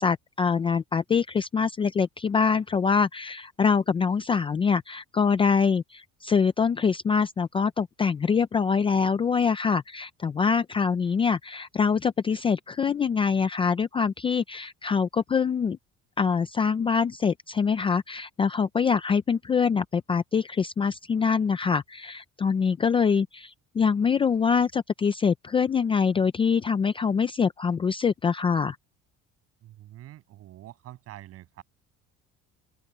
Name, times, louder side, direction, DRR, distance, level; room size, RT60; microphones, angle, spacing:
voice 1, 0.0-15.8 16.2-28.8, left 6 dB, 20° left, 0.4 m, -24 dB
voice 2, 29.6-31.6, right 14 dB, 55° right, 7.9 m, -46 dB
open air
cardioid pair, 175°, 29 cm